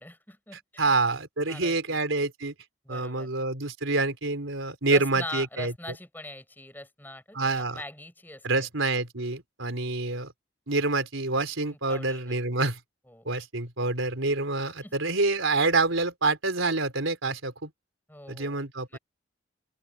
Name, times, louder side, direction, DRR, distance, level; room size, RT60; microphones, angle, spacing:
voice 1, 0.0-0.9 1.5-2.0 2.9-3.3 4.9-8.7 11.9-12.2 13.1-13.3 14.8-14.9 18.1-18.6 18.9-19.0, left 1 dB, 10° left, 6.9 m, -42 dB
voice 2, 0.5-2.5 2.9-5.7 7.3-7.8 8.4-10.3 10.7-12.8 13.3-17.7 18.3-19.0, right 3 dB, 85° right, 3.9 m, -27 dB
open air
head